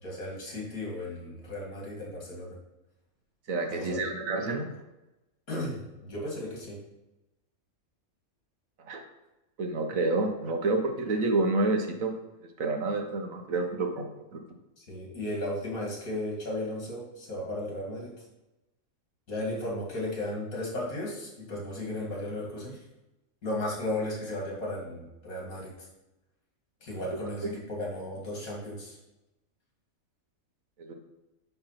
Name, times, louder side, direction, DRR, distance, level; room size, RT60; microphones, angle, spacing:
voice 1, 0.0-2.6 3.7-4.0 5.5-6.8 14.8-18.1 19.3-22.8 23.4-25.7 26.8-29.0, left 1 dB, 80° left, -3 dB, 2.7 m, -35 dB
voice 2, 3.5-4.7 8.9-9.0 9.6-12.1 12.6-14.0 14.3-14.4 27.4-27.5 30.8-30.9, right 2 dB, 70° right, 3 dB, 1.5 m, -28 dB
9.6 x 3.5 x 5.8 m, 0.96 s
omnidirectional pair, 1.5 m